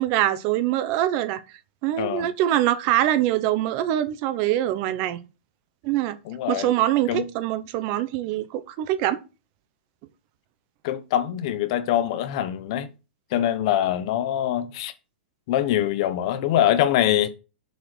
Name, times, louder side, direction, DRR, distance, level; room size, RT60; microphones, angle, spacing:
voice 1, 0.0-1.4 1.8-5.2 5.8-6.2 6.5-9.2, right 13 dB, 30° right, 0.8 m, -24 dB
voice 2, 2.0-2.3 6.2-6.7 7.1-7.3 10.8-12.9 13.3-14.9 15.5-17.3, left 11 dB, 40° left, 0.9 m, -24 dB
6.7 x 4.9 x 6.1 m
hypercardioid pair, 170°, 5 cm